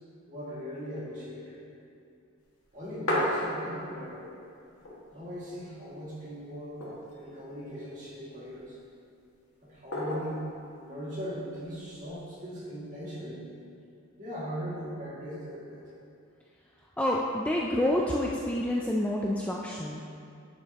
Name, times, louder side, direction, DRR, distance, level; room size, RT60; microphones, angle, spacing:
voice 1, 0.3-1.6 2.7-4.3 5.1-6.8 7.1-8.8 9.6-10.5 10.8-13.5 14.2-15.9, equal, 35° right, -7 dB, 2.0 m, -39 dB
sound 1, 2.6-4.1 4.4-4.5 4.7-5.5 6.0-6.1 6.5-7.4 8.1-8.7 9.9-10.5 11.6-12.1, left 1 dB, 80° left, 1.8 m, -33 dB
voice 2, 17.0-20.0, left 1 dB, 5° left, -3 dB, 0.3 m, -28 dB
9.7 x 7.1 x 2.9 m, 2.5 s
head